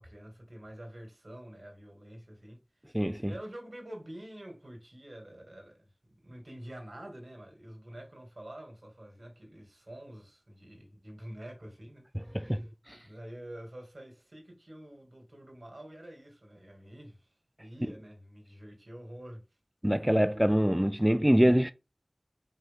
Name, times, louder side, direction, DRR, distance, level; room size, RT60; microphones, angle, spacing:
voice 1, 0.0-2.6 3.2-5.9 6.2-12.7 13.0-17.3 17.6-19.4, right 1 dB, 75° right, 2.4 m, -47 dB
voice 2, 2.9-3.3 12.1-12.6 12.9-13.0 19.8-21.7, equal, 10° right, 0.4 m, -25 dB
5.4 x 4.7 x 3.7 m
wide cardioid pair, 40°, 0 cm